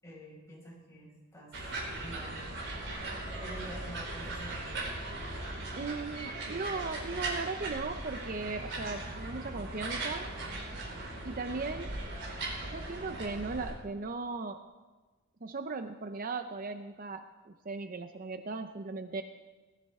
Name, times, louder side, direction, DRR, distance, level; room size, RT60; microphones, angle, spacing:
voice 1, 0.0-1.6 2.0-2.6 2.8-4.6, right 1 dB, 15° left, -4 dB, 5.5 m, -48 dB
sound 1, 1.5-13.7, right 2 dB, 60° right, 4.7 m, -39 dB
voice 2, 5.7-10.3 11.2-12.0 12.6-14.6 15.4-19.2, right 3 dB, 40° right, 8 dB, 0.6 m, -37 dB
19.5 x 14.5 x 3.6 m, 1.3 s
head